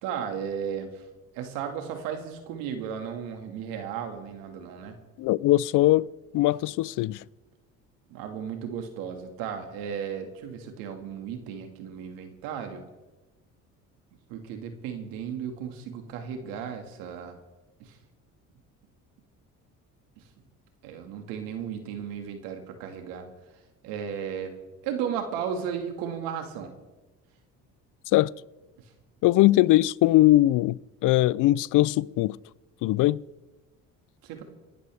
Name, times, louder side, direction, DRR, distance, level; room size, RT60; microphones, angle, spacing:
voice 1, 0.0-1.0 1.3-5.0 8.1-12.8 14.3-17.4 17.8-18.0 20.8-23.3 23.8-24.5 24.8-26.7 34.2-34.4, right 7 dB, 90° right, 2.0 m, -35 dB
voice 2, 5.2-6.1 6.3-7.2 28.1-28.3 29.2-32.4 32.8-33.2, left 16 dB, 65° left, 0.5 m, -21 dB
26.5 x 11.5 x 3.4 m
supercardioid pair, 80°, 34 cm